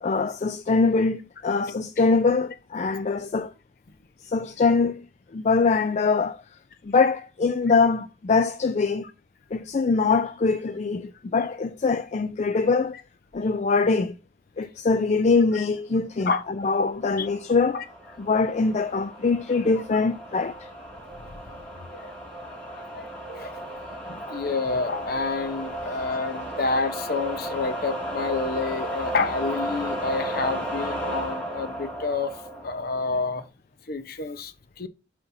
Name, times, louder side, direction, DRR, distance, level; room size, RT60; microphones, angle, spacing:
voice 1, 0.0-3.5 4.2-5.1 5.3-6.4 6.8-9.1 9.5-13.0 13.3-14.1 14.6-16.3 16.6-17.8 18.2-20.7, left 4 dB, 35° left, 0.4 m, -23 dB
sound 1, 17.0-33.4, right 1 dB, 5° left, 2.1 m, -34 dB
voice 2, 21.6-22.1 22.4-23.6 24.1-33.4 33.9-34.9, left 4 dB, 50° left, 0.8 m, -29 dB
12.0 x 4.2 x 2.6 m
head